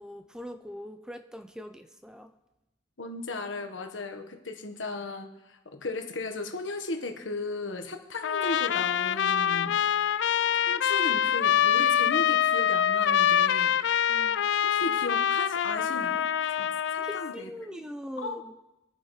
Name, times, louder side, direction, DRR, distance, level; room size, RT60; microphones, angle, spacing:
voice 1, 0.0-2.3 10.1-10.2 14.1-14.5 17.0-18.5, equal, 5° right, 8 dB, 0.5 m, -42 dB
voice 2, 3.0-10.1 10.7-14.0 14.6-16.3 16.6-17.9 18.2-18.4, left 2 dB, 90° left, 5 dB, 1.4 m, -36 dB
Trumpet, 8.2-17.4, left 9 dB, 70° left, 0.3 m, -25 dB
25.0 x 9.4 x 3.2 m, 0.95 s
head